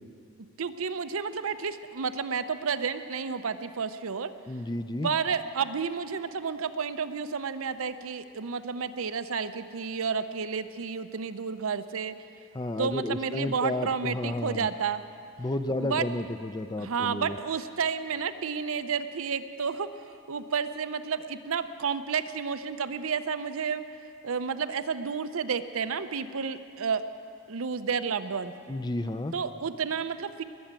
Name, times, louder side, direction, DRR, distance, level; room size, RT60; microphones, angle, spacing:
voice 1, 0.4-4.3 5.0-12.2 12.8-15.0 15.8-16.1 16.8-19.9 20.3-23.8 24.2-27.0 27.5-28.5 29.3-30.4, right 6 dB, 70° right, 11 dB, 0.6 m, -31 dB
voice 2, 4.5-5.1 12.5-14.7 15.4-17.4 28.7-29.3, left 1 dB, 20° left, 10 dB, 0.4 m, -32 dB
20.5 x 7.1 x 8.9 m, 2.5 s
head